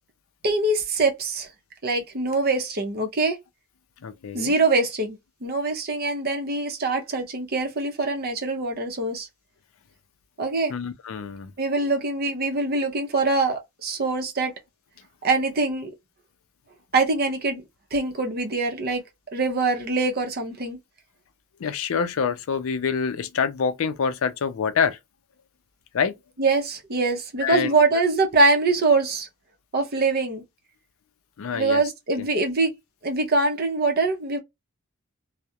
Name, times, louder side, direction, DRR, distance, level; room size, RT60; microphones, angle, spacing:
voice 1, 0.4-1.5 1.8-3.4 4.3-9.3 10.4-10.7 11.6-14.5 15.2-15.9 16.9-17.6 17.9-19.0 19.3-20.8 26.4-29.3 29.7-30.4 31.5-32.7 33.0-34.4, right 3 dB, 45° right, 0.6 m, -23 dB
voice 2, 4.0-4.5 10.7-11.5 21.6-25.0 25.9-26.1 27.4-27.7 31.4-31.8 32.2-32.3, left 6 dB, 65° left, 0.4 m, -26 dB
2.3 x 2.0 x 2.7 m
head